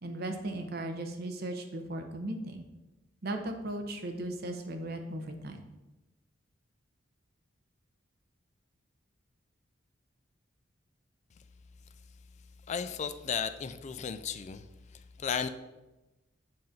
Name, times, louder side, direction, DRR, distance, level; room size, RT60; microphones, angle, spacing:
voice 1, 0.0-2.6 3.2-5.6, right 1 dB, 50° right, 0.7 m, -37 dB
voice 2, 12.7-14.6 15.2-15.5, left 7 dB, 35° left, 0.3 m, -34 dB
7.5 x 2.6 x 5.7 m
head